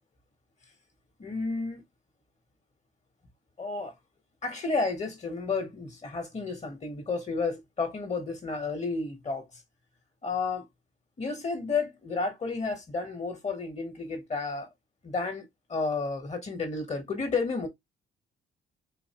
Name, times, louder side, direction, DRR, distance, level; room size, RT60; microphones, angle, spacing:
voice 1, 1.2-1.8 3.6-3.9 4.4-9.5 10.2-10.7 11.2-14.7 15.0-17.7, left 4 dB, 35° left, 1.2 m, -31 dB
4.0 x 2.7 x 2.8 m
cardioid pair, 90°, 20 cm